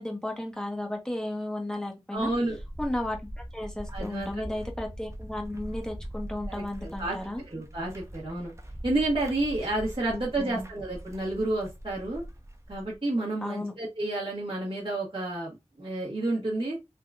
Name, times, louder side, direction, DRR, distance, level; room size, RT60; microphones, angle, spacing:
voice 1, 0.0-2.3 2.8-7.4 10.1-10.7 13.4-13.7, left 1 dB, 5° left, 1.1 m, -34 dB
voice 2, 2.1-2.6 3.9-4.5 6.5-7.2 7.5-8.5 8.8-12.2 12.7-16.9, right 2 dB, 45° right, 1.4 m, -30 dB
sound 1, 2.2-13.0, right 1 dB, 25° right, 0.8 m, -42 dB
3.6 x 2.9 x 2.4 m
wide cardioid pair, 40°, 12 cm